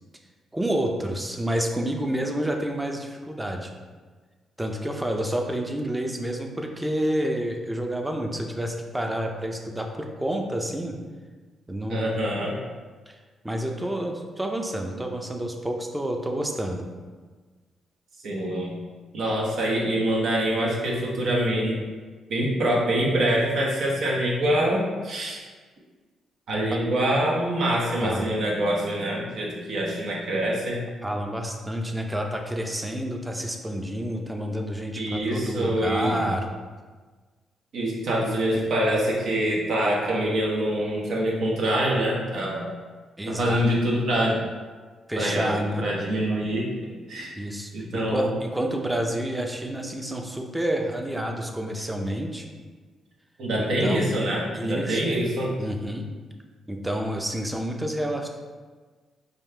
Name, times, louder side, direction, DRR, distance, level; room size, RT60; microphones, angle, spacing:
voice 1, 0.5-3.7 4.6-11.0 11.7-12.2 13.1-13.2 13.4-16.9 28.0-28.3 31.0-36.5 43.2-43.6 45.1-45.9 47.4-52.5 53.6-54.1 54.5-55.2 55.6-56.0 56.7-58.3, right 1 dB, 10° right, 3 dB, 0.6 m, -29 dB
voice 2, 11.9-12.6 18.2-18.7 19.1-21.8 22.3-25.4 26.5-30.8 35.0-36.2 37.7-42.7 43.3-44.4 45.2-46.7 47.1-47.4 47.7-48.3 53.4-55.5, right 1 dB, 70° right, -3 dB, 1.0 m, -25 dB
5.2 x 2.4 x 3.3 m, 1.4 s
cardioid pair, 75°, 0 cm